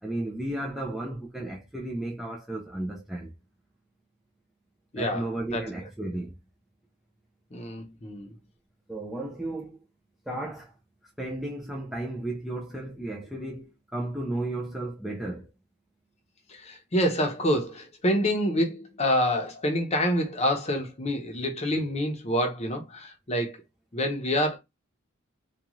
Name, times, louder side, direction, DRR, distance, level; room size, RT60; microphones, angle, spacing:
voice 1, 0.0-3.3 5.0-6.4 8.9-9.8 10.3-10.7 11.2-15.5, right 1 dB, ahead, 0.3 m, -34 dB
voice 2, 4.9-5.7 7.5-8.3 16.5-23.5 23.9-24.6, equal, 30° left, 0.7 m, -27 dB
2.4 x 2.3 x 3.0 m
head